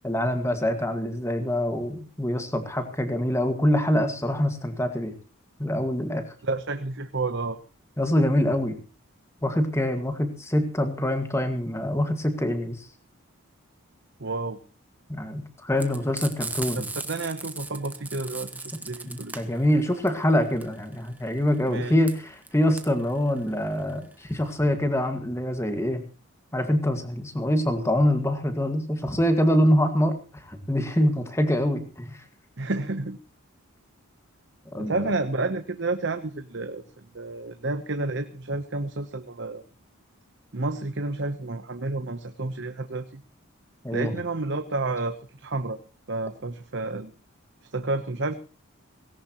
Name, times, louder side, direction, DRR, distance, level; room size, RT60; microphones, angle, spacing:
voice 1, 0.0-5.1 5.6-6.2 8.0-8.8 9.4-12.9 15.1-16.9 18.7-26.0 26.5-32.2 34.7-35.1 43.8-44.1, equal, 10° left, 7 dB, 1.9 m, -25 dB
voice 2, 6.4-7.6 14.2-14.6 16.8-19.3 21.7-21.9 32.6-33.2 34.7-36.8 37.1-39.6 40.5-43.2 43.9-45.8 46.1-47.1 47.7-48.3, right 2 dB, 55° right, 8 dB, 1.0 m, -30 dB
Frying (food), 15.8-24.5, right 3 dB, 5° right, 1.1 m, -37 dB
19.0 x 17.0 x 3.1 m, 0.34 s
head